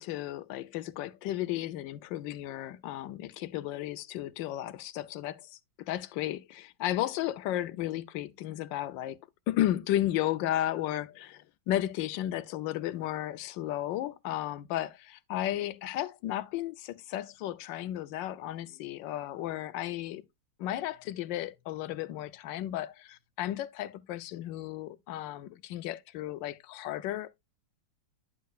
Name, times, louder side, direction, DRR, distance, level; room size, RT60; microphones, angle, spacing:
voice 1, 0.0-9.2 9.5-20.2 20.6-27.4, left 13 dB, 80° left, 1.3 m, -34 dB
10.5 x 6.5 x 2.3 m
omnidirectional pair, 2.0 m